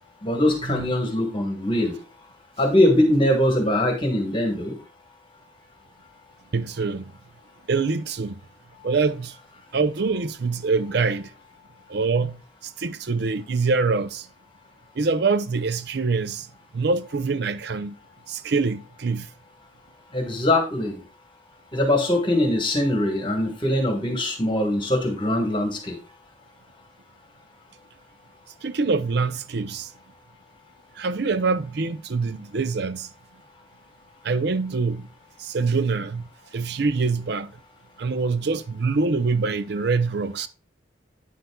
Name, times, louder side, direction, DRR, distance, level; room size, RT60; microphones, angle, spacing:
voice 1, 0.2-1.9 2.6-4.7 20.1-21.0 21.7-25.9, left 1 dB, 25° left, 1.4 m, -22 dB
voice 2, 6.5-7.1 7.7-8.4 8.8-9.4 9.7-11.3 11.9-14.3 15.0-16.5 16.7-18.0 18.3-19.3 28.6-29.9 31.0-33.1 34.2-35.1 35.4-37.5 38.0-40.5, right 4 dB, 55° right, 0.5 m, -25 dB
9.2 x 7.9 x 2.3 m
head